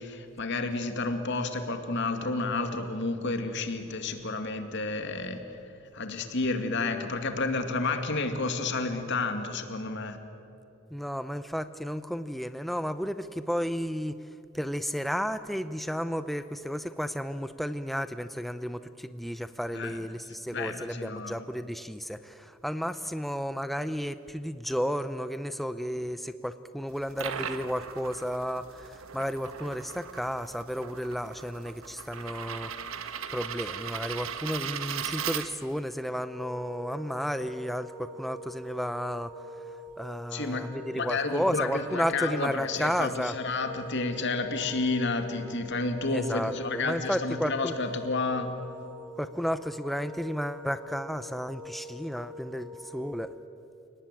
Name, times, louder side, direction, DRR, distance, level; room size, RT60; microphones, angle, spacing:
voice 1, 0.0-5.4 5.9-10.2 19.7-20.0 20.5-21.4 40.3-48.5, left 3 dB, 60° left, 7 dB, 2.3 m, -31 dB
voice 2, 10.9-14.2 14.5-39.3 40.0-43.3 46.1-47.7 49.2-53.3, equal, ahead, 11 dB, 0.6 m, -33 dB
sound 1, 26.9-35.9, right 7 dB, 80° right, 1.3 m, -38 dB
sound 2, 36.1-53.3, left 1 dB, 40° right, 6.0 m, -45 dB
29.5 x 18.5 x 9.0 m, 2.9 s
head